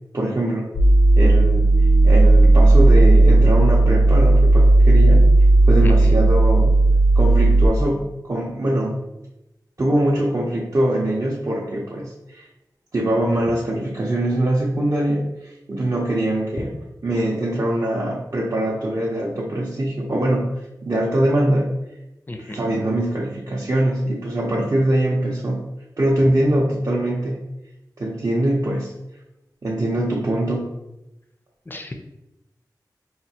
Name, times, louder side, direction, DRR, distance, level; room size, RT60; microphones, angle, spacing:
voice 1, 0.1-0.7 1.2-1.6 2.0-5.2 5.7-6.7 7.1-9.0 9.8-12.5 12.9-16.7 17.0-20.5 20.8-21.7 22.4-25.6 26.0-27.4 28.0-28.9 29.6-30.7, right 1 dB, 45° right, -4 dB, 0.5 m, -22 dB
sound 1, 0.8-7.7, right 2 dB, 75° left, 0.5 m, -13 dB
voice 2, 5.8-6.2 22.3-22.6 31.7-31.9, left 1 dB, 25° left, 5 dB, 0.4 m, -32 dB
4.3 x 2.3 x 2.7 m, 0.93 s
wide cardioid pair, 85°, 8 cm